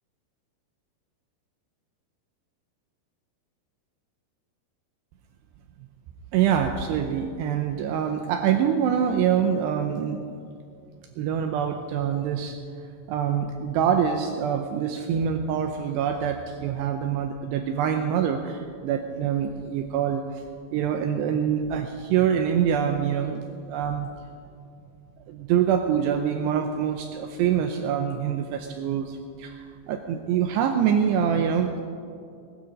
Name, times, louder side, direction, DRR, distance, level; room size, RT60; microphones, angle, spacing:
voice 1, 6.3-10.3 11.2-12.6 13.1-20.4 20.7-23.4 23.7-24.1 25.3-31.8, right 8 dB, 85° right, 6 dB, 2.4 m, -25 dB
19.5 x 12.5 x 5.1 m, 2.5 s
omnidirectional pair, 5.6 m